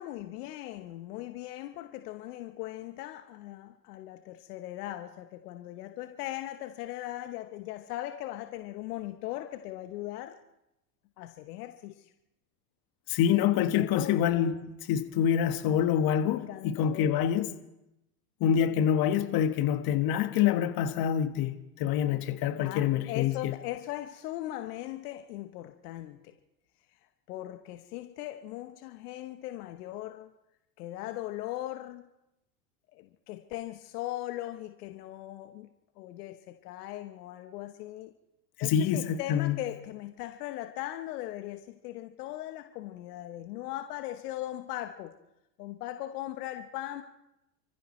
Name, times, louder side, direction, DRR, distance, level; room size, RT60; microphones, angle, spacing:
voice 1, 0.0-10.4 11.2-12.1 13.7-14.7 16.2-17.3 22.6-26.3 27.3-30.3 30.8-32.0 32.9-35.7 36.0-38.1 38.6-45.1 45.6-47.0, left 14 dB, 70° left, 1.1 m, -39 dB
voice 2, 13.1-17.5 18.4-23.5 38.6-39.6, left 9 dB, 45° left, 1.6 m, -26 dB
28.0 x 15.0 x 3.2 m
hypercardioid pair, 90°, 49 cm